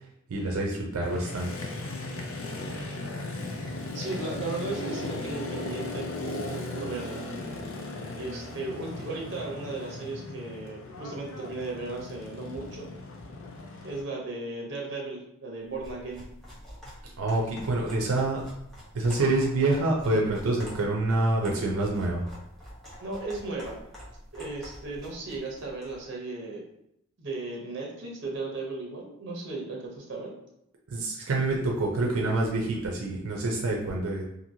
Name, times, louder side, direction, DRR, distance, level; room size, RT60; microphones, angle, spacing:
voice 1, 0.3-1.5 17.2-18.4 18.9-22.2 30.9-34.2, right 2 dB, 90° right, -1 dB, 0.5 m, -27 dB
Motorcycle, 1.0-14.0, left 2 dB, 75° left, 0.5 m, -37 dB
voice 2, 3.9-7.2 8.1-12.9 13.8-16.2 23.0-23.8 24.3-26.7 27.2-30.3, right 3 dB, 55° right, -2 dB, 0.8 m, -36 dB
sound 1, 15.7-26.0, equal, ahead, 0.8 m, -47 dB
2.9 x 2.6 x 2.7 m, 0.79 s
head